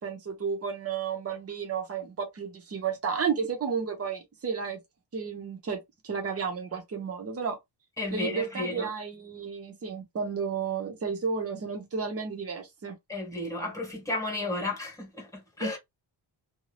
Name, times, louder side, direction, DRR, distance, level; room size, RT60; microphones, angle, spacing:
voice 1, 0.0-4.8 5.1-7.6 8.1-12.9 15.6-15.7, right 6 dB, 30° right, 0.8 m, -32 dB
voice 2, 8.0-8.9 13.1-15.8, left 2 dB, 5° left, 1.2 m, -33 dB
2.5 x 2.2 x 3.2 m
wide cardioid pair, 170°, 48 cm